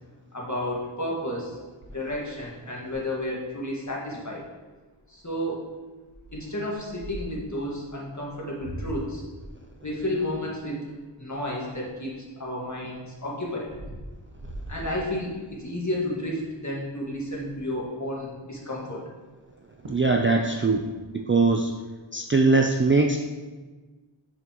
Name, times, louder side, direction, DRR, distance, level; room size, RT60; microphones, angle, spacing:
voice 1, 0.3-1.6 1.9-4.4 5.1-5.6 6.3-9.2 9.8-10.9 11.2-13.7 14.7-19.0, left 1 dB, 35° left, -4 dB, 1.8 m, -32 dB
sound 1, 1.8-3.3 3.8-3.9 4.1-4.4 4.9-5.2 6.1-7.5 8.2-12.1 12.6-15.6 16.1-16.4 16.6-16.7 17.0-17.7 19.4-19.5 19.8-20.2 20.5-21.5, right 1 dB, 85° right, 1.1 m, -42 dB
voice 2, 19.9-20.8 21.1-21.7 22.1-23.2, right 3 dB, 25° right, 2 dB, 0.4 m, -21 dB
6.7 x 6.6 x 3.0 m, 1.3 s
wide cardioid pair, 50°, 48 cm